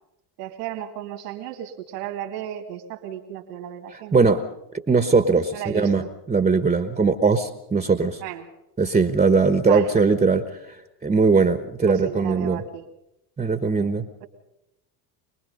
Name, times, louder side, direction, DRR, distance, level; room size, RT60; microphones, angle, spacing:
voice 1, 0.4-4.4 5.5-6.1 8.2-8.5 9.6-10.0 11.9-12.8 14.2-14.3, right 11 dB, 85° right, 2 dB, 2.3 m, -34 dB
voice 2, 3.9-4.4 4.9-8.2 8.8-10.6 11.0-12.6 13.4-14.1, right 4 dB, 15° right, 9 dB, 1.1 m, -20 dB
24.5 x 20.0 x 5.4 m, 0.87 s
supercardioid pair, 100°, 47 cm